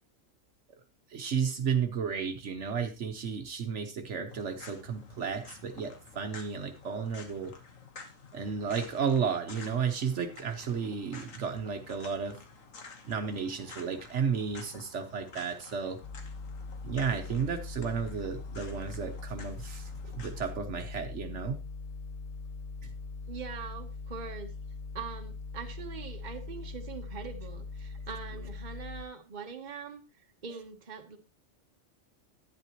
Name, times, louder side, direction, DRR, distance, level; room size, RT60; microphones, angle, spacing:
voice 1, 1.1-7.5 8.3-12.4 13.0-16.0 16.8-21.6 22.8-22.9, right 6 dB, 65° right, 7 dB, 1.1 m, -33 dB
sound 1, 4.3-20.5, left 4 dB, 80° left, 1.7 m, -51 dB
sound 2, 16.0-29.1, left 4 dB, 50° left, 0.4 m, -41 dB
voice 2, 23.3-24.5 24.9-31.2, right 6 dB, 40° right, 5 dB, 1.1 m, -42 dB
11.0 x 9.2 x 2.9 m, 0.29 s
omnidirectional pair, 1.3 m